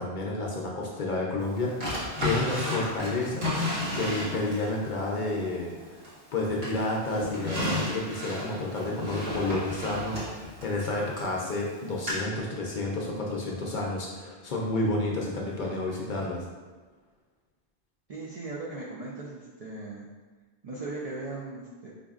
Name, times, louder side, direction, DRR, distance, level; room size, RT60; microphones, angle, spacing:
voice 1, 0.0-6.0 6.3-16.5, left 2 dB, 55° left, -2 dB, 0.6 m, -30 dB
Drawer open or close, 1.8-4.7 5.2-6.3 6.6-11.3 12.1-12.2, left 1 dB, 85° right, 1.6 m, -32 dB
voice 2, 18.1-20.1 20.6-21.9, right 2 dB, 60° right, -5 dB, 0.4 m, -38 dB
4.8 x 2.6 x 2.4 m, 1.3 s
omnidirectional pair, 1.1 m